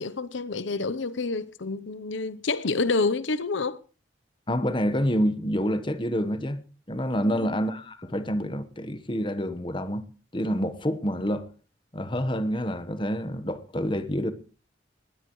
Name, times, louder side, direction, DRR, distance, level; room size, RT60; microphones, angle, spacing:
voice 1, 0.0-3.8 7.2-7.6, left 3 dB, 75° left, 0.8 m, -28 dB
voice 2, 4.5-10.1 10.3-11.5 11.9-14.3, equal, 25° left, 1.1 m, -27 dB
20.0 x 17.0 x 3.1 m
head